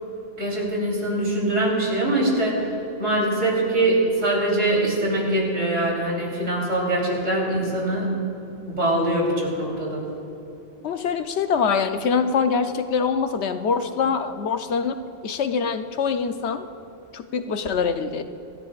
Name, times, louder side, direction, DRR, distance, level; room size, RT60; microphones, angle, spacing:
voice 1, 0.4-2.7 3.0-8.1 8.7-10.0, right 1 dB, 85° right, -3 dB, 4.1 m, -23 dB
voice 2, 10.8-15.0 15.2-16.7 17.1-18.2, left 5 dB, 65° left, 8 dB, 1.0 m, -24 dB
26.5 x 13.5 x 2.5 m, 2.8 s
omnidirectional pair, 1.3 m